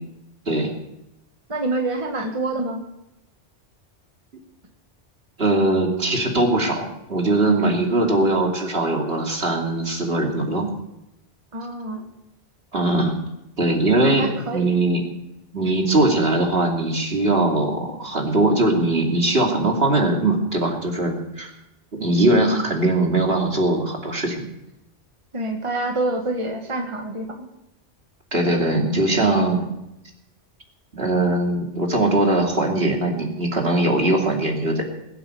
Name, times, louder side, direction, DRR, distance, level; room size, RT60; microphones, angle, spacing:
voice 1, 1.5-2.8 11.5-12.1 13.9-14.7 22.3-22.7 25.3-27.3, right 2 dB, 30° right, 3 dB, 1.5 m, -27 dB
voice 2, 5.4-10.7 12.7-13.1 13.6-15.0 15.5-21.5 21.9-24.4 28.3-29.7 30.9-34.8, right 2 dB, 60° right, 1 dB, 2.9 m, -21 dB
21.5 x 8.1 x 6.9 m, 0.88 s
omnidirectional pair, 1.2 m